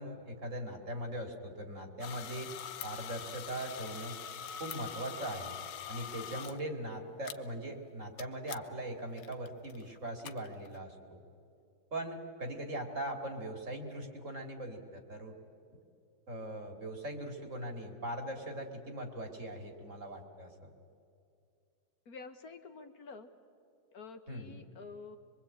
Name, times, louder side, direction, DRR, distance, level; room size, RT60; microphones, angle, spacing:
voice 1, 0.0-2.5 2.8-4.2 4.6-5.6 5.9-11.2 11.9-15.4 16.3-20.7 24.3-24.6, right 1 dB, 40° right, 4 dB, 2.8 m, -40 dB
sound 1, 2.0-6.6 7.3-7.4 8.2-8.3 8.5-8.6 9.2-10.8, left 9 dB, 75° left, 1.6 m, -43 dB
voice 2, 22.1-23.3 23.9-25.2, left 4 dB, 55° left, 7 dB, 1.5 m, -49 dB
24.0 x 23.5 x 8.7 m, 2.5 s
omnidirectional pair, 2.0 m